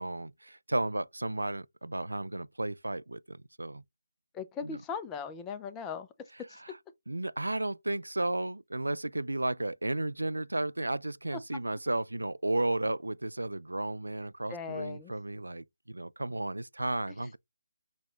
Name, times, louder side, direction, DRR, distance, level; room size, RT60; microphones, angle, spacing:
voice 1, 0.0-3.8 4.6-4.8 6.6-6.8 7.1-17.4, right 2 dB, 80° right, 0.4 m, -33 dB
voice 2, 4.3-6.1 6.5-6.6 11.3-11.4 14.5-15.1, left 5 dB, 15° left, 0.5 m, -38 dB
6.2 x 2.3 x 3.1 m
figure-of-eight pair, 150°, 0 cm